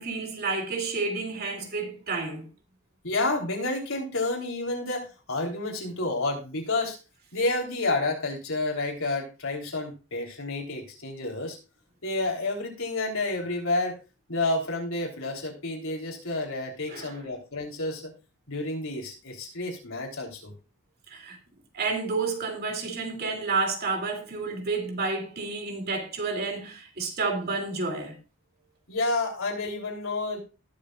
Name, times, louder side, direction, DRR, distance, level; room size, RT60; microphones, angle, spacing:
voice 1, 0.0-2.5 16.9-17.2 21.1-21.4 21.7-28.2, right 4 dB, 50° right, 3.0 m, -30 dB
voice 2, 3.0-7.0 7.3-11.6 12.0-14.0 14.3-18.1 18.5-20.5 28.9-30.4, left 2 dB, 85° left, 3.6 m, -30 dB
19.5 x 7.1 x 2.5 m
head